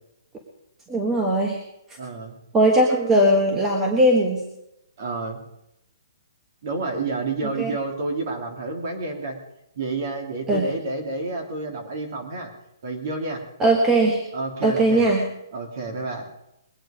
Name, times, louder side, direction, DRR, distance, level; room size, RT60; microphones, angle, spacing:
voice 1, 0.9-1.6 2.5-4.4 7.6-7.7 10.5-10.7 13.6-14.2 14.6-15.2, right 1 dB, 10° right, 0 dB, 1.4 m, -19 dB
voice 2, 2.0-2.4 5.0-5.4 6.6-9.4 9.7-12.5 12.8-13.5 14.3-15.1 15.5-16.3, right 3 dB, 40° right, 3 dB, 3.1 m, -29 dB
22.0 x 9.1 x 5.2 m, 0.83 s
hypercardioid pair, 175°, 2 cm